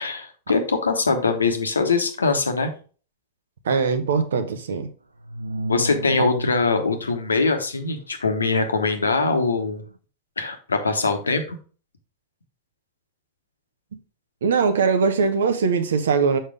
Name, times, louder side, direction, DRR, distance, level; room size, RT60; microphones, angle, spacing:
voice 1, 0.0-2.7 5.7-9.8 10.4-11.6, left 4 dB, 80° left, 1.1 m, -22 dB
voice 2, 3.6-4.9 6.2-6.3 14.4-16.4, right 5 dB, 65° right, 1.0 m, -21 dB
sound 1, 5.2-7.2 9.8-10.0, equal, 85° right, 0.4 m, -32 dB
6.6 x 5.7 x 3.4 m
figure-of-eight pair, 90°, 0 cm